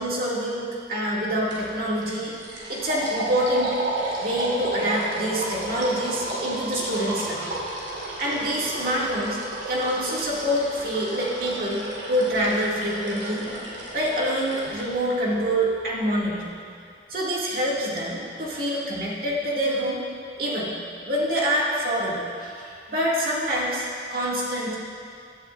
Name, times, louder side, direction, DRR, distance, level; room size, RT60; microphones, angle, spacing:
voice 1, 0.0-2.4 2.7-3.8 4.2-7.5 8.2-9.4 9.7-13.5 13.9-16.6 17.1-20.0 20.4-20.7 21.0-24.7, equal, 50° right, -6 dB, 2.2 m, -26 dB
sound 1, 1.5-1.7 2.0-14.9, right 2 dB, 70° right, 2.9 m, -33 dB
16.5 x 11.0 x 2.5 m, 2.3 s
head